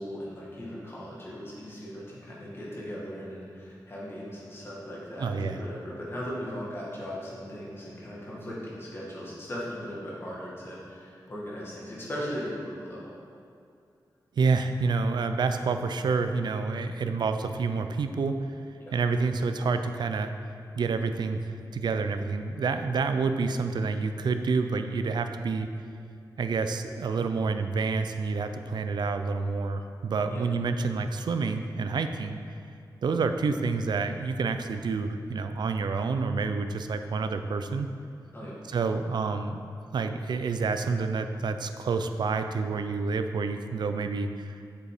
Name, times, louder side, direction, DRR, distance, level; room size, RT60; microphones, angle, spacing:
voice 1, 0.0-13.1 18.9-19.0 30.3-30.5 38.3-38.6, equal, 30° left, -6 dB, 1.9 m, -38 dB
voice 2, 5.2-5.6 14.4-18.5 18.9-20.3 20.8-25.7 26.4-32.4 33.0-37.9 38.7-39.6 39.9-44.6, right 4 dB, 80° right, 8 dB, 0.5 m, -28 dB
7.6 x 6.9 x 5.0 m, 2.4 s
wide cardioid pair, 160°, 7 cm